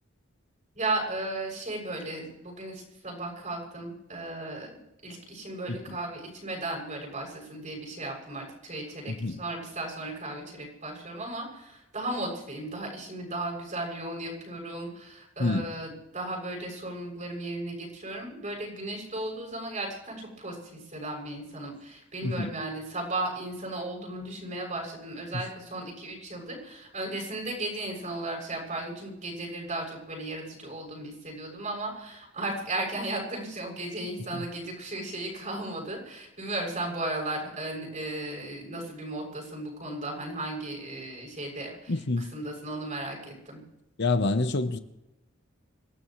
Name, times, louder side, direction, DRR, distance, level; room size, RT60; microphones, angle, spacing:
voice 1, 0.8-41.9 42.3-43.6, right 2 dB, 40° right, 7.1 m, -35 dB
voice 2, 9.1-9.4 15.4-15.7 22.2-22.5 25.3-25.4 34.3-34.5 41.9-42.3 44.0-44.8, left 2 dB, 60° left, 0.9 m, -28 dB
27.0 x 16.0 x 3.2 m
head